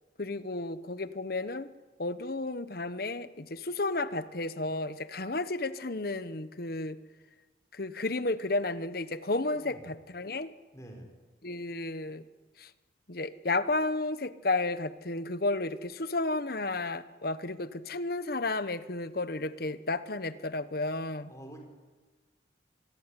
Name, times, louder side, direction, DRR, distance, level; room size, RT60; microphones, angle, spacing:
voice 1, 0.2-1.7 2.0-7.0 7.7-10.5 11.4-12.2 12.6-12.7 13.1-21.3, left 2 dB, 55° left, 13 dB, 1.1 m, -32 dB
voice 2, 9.5-10.0 10.7-11.1 21.3-21.6, right 1 dB, 15° left, 3 dB, 4.8 m, -47 dB
26.0 x 21.0 x 10.0 m, 1.3 s
head